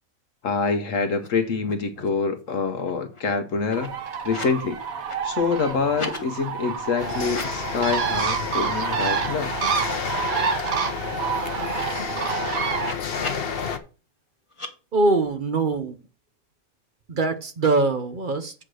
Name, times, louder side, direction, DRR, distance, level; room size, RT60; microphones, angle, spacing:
voice 1, 0.4-3.9 4.2-4.8 5.2-9.5, left 5 dB, 65° left, 1.3 m, -26 dB
sound 1, 1.1-1.3 1.5-2.2 2.5-4.6 4.9-6.2 7.2-7.9 8.3-8.5 8.8-10.2 10.6-10.7 10.9-13.6 14.5-14.7, left 2 dB, 20° left, 1.3 m, -39 dB
Bird, 3.7-12.9, right 6 dB, 70° right, 1.6 m, -28 dB
sound 2, 7.0-13.8, left 6 dB, 45° left, 1.0 m, -31 dB
voice 2, 14.9-16.0 17.1-18.5, right 3 dB, 40° right, 0.9 m, -22 dB
7.9 x 5.0 x 6.3 m
omnidirectional pair, 1.5 m